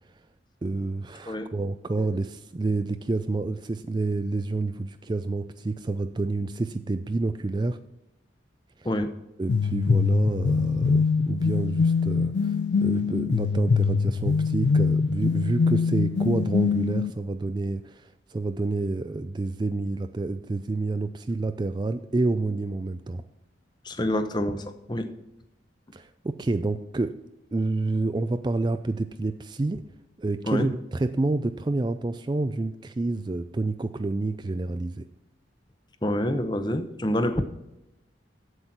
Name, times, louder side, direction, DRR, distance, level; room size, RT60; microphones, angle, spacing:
voice 1, 0.6-7.8 9.4-12.5 12.8-23.2 25.9-27.2 27.5-29.8 30.2-35.0, right 2 dB, 25° right, 10 dB, 0.3 m, -28 dB
sound 1, 9.5-17.1, left 5 dB, 60° left, 0.4 m, -23 dB
voice 2, 23.8-25.1 30.4-30.7 36.0-37.6, left 1 dB, 25° left, 9 dB, 0.8 m, -27 dB
8.0 x 8.0 x 5.8 m, 0.89 s
head